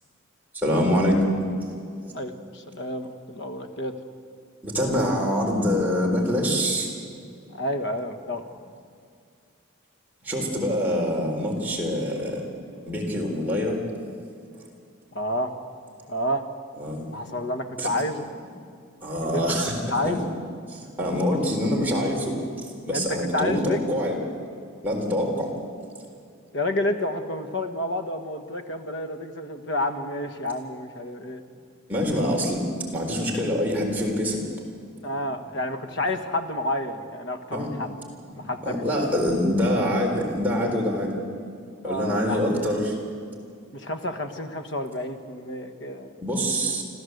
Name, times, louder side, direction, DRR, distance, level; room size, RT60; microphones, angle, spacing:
voice 1, 0.6-1.2 4.6-6.9 10.2-12.4 12.9-13.8 16.8-17.1 17.8-17.9 19.0-19.8 20.0-20.3 20.7-22.3 22.9-24.2 24.8-25.5 31.9-32.6 32.9-34.4 37.5-37.7 38.6-41.1 41.8-42.9 46.2-46.8, equal, 10° right, -3 dB, 4.0 m, -25 dB
voice 2, 2.1-3.9 7.5-8.4 15.1-15.5 16.1-16.5 17.1-18.2 19.2-19.6 19.9-20.3 22.9-23.8 26.5-31.4 35.0-37.9 38.3-38.8 41.8-42.7 43.7-46.1, left 1 dB, 60° left, 7 dB, 1.6 m, -30 dB
26.5 x 15.0 x 8.1 m, 2.2 s
head